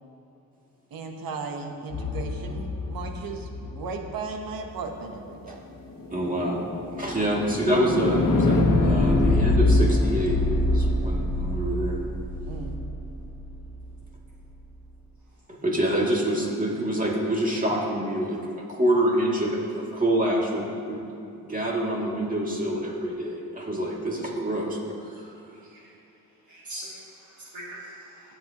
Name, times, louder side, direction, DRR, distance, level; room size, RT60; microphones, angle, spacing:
voice 1, 0.9-5.6 12.5-12.7, right 4 dB, 85° right, 4 dB, 1.1 m, -36 dB
sound 1, 1.9-4.1 5.9-13.9, left 2 dB, 70° left, 1.2 m, -25 dB
voice 2, 6.1-6.6 7.0-10.4 10.6-12.0 15.6-18.4 18.7-21.0 21.4-24.8 25.1-25.2, right 1 dB, 25° right, -3 dB, 2.4 m, -26 dB
voice 3, 26.5-28.3, right 1 dB, 60° right, -6 dB, 2.6 m, -42 dB
17.0 x 8.2 x 3.0 m, 2.7 s
cardioid pair, 70°, 34 cm